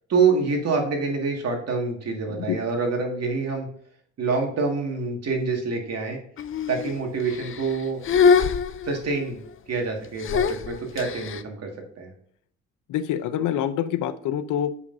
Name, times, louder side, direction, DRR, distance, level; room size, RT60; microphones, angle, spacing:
voice 1, 0.1-3.7 4.2-6.2 6.7-8.0 8.8-9.4 9.7-11.7 12.0-12.1, right 4 dB, 55° right, 1 dB, 2.0 m, -26 dB
voice 2, 2.3-2.6 12.9-14.8, left 10 dB, 80° left, 10 dB, 0.7 m, -26 dB
sound 1, 6.4-6.9 7.3-7.8 8.0-9.2 10.2-11.4, left 6 dB, 45° left, 0.5 m, -23 dB
8.1 x 5.7 x 2.6 m, 0.66 s
cardioid pair, 90°, 30 cm